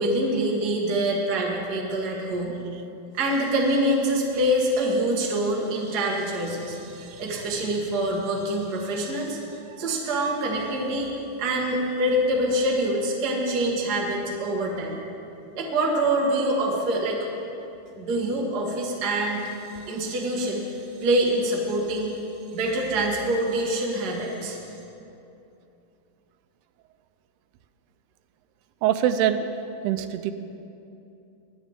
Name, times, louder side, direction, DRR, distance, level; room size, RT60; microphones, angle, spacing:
voice 1, 0.0-2.6 3.1-9.4 9.8-11.1 11.4-15.0 15.5-17.2 18.0-19.5 19.9-22.2 22.5-24.6, right 1 dB, 50° right, -2 dB, 1.2 m, -25 dB
voice 2, 28.8-29.5 29.8-30.3, right 10 dB, 90° right, 10 dB, 2.6 m, -23 dB
20.0 x 10.5 x 3.7 m, 2.8 s
omnidirectional pair, 4.6 m